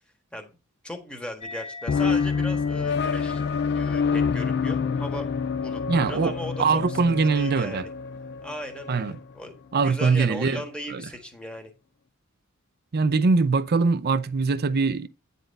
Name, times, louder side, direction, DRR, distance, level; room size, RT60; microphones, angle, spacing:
voice 1, 0.8-3.4 3.7-5.3 5.6-7.9 8.4-11.7, left 1 dB, 5° left, 1.4 m, -38 dB
sound 1, 1.4-8.3, left 4 dB, 30° left, 0.8 m, -46 dB
sound 2, 1.9-9.2, left 5 dB, 50° left, 0.4 m, -27 dB
voice 2, 5.9-7.9 8.9-9.1 9.7-10.6 10.9-11.1 12.9-15.1, right 4 dB, 50° right, 0.5 m, -22 dB
9.1 x 4.1 x 5.3 m
head